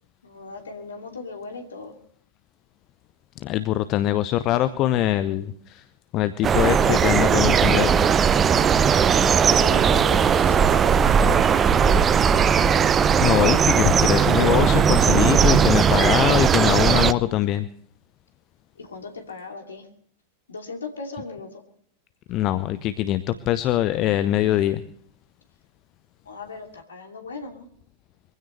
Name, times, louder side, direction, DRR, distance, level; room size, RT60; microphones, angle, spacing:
voice 1, 0.2-2.0 9.5-10.9 18.8-19.9 20.5-21.6 26.2-27.7, left 3 dB, 70° left, 4 dB, 2.8 m, -37 dB
voice 2, 3.4-5.8 6.1-7.9 13.2-17.7 21.1-21.2 22.3-24.8, left 13 dB, 35° left, 14 dB, 0.8 m, -23 dB
sound 1, 6.4-17.1, right 7 dB, 25° right, 0.7 m, -18 dB
23.5 x 16.0 x 3.3 m, 0.64 s
figure-of-eight pair, 90°, 0 cm